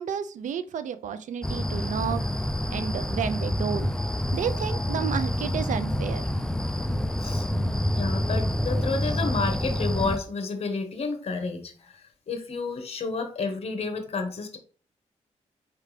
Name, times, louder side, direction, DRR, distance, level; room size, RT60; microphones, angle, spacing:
voice 1, 0.0-2.2 2.7-3.9 4.3-6.3, right 7 dB, 80° right, 12 dB, 0.5 m, -31 dB
sound 1, 1.4-10.2, equal, 5° left, 0.4 m, -27 dB
voice 2, 7.9-14.6, left 4 dB, 55° left, 5 dB, 1.1 m, -31 dB
4.8 x 3.4 x 3.2 m, 0.39 s
cardioid pair, 100°, 13 cm